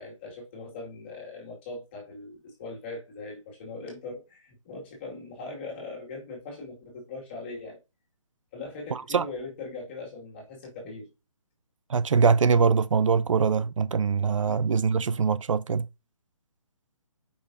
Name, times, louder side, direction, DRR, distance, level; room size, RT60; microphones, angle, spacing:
voice 1, 0.0-7.8 8.5-11.1 14.5-15.1, left 3 dB, 20° left, 2.1 m, -40 dB
voice 2, 8.9-9.2 11.9-15.9, right 5 dB, 70° right, 0.6 m, -23 dB
8.3 x 5.6 x 2.7 m
hypercardioid pair, 175°, 17 cm